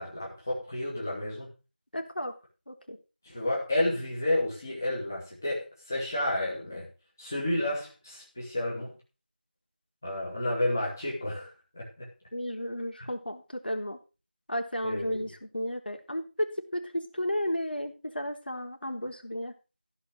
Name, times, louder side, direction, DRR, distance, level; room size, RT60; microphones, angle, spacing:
voice 1, 0.0-1.5 3.2-6.9 7.2-9.0 10.0-12.1 14.8-15.2, left 1 dB, 15° left, -5 dB, 2.6 m, -31 dB
voice 2, 1.9-2.3 2.7-3.0 12.3-14.0 14.5-19.5, equal, 55° left, 3 dB, 3.6 m, -33 dB
15.0 x 5.6 x 6.5 m, 0.32 s
figure-of-eight pair, 175°, 6 cm